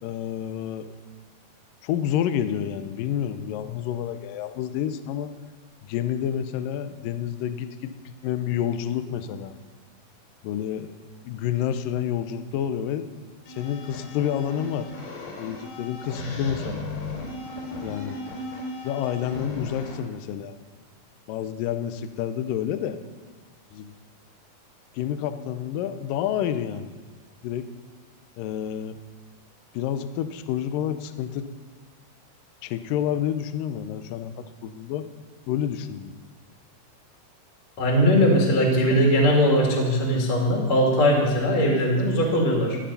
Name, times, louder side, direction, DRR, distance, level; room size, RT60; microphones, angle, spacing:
voice 1, 0.0-0.9 1.8-5.3 5.8-9.5 10.4-11.0 11.2-13.0 13.6-14.9 15.4-16.9 17.8-18.2 18.8-20.6 21.3-23.0 23.7-23.9 24.9-26.9 27.4-27.7 28.4-29.0 29.7-31.5 32.6-35.1 35.5-36.1, left 10 dB, 90° left, 10 dB, 2.0 m, -29 dB
sound 1, 13.5-20.0, left 2 dB, 70° left, 4.5 m, -36 dB
voice 2, 37.8-42.8, equal, 45° left, -1 dB, 3.3 m, -20 dB
15.5 x 10.5 x 5.7 m, 1.4 s
omnidirectional pair, 4.8 m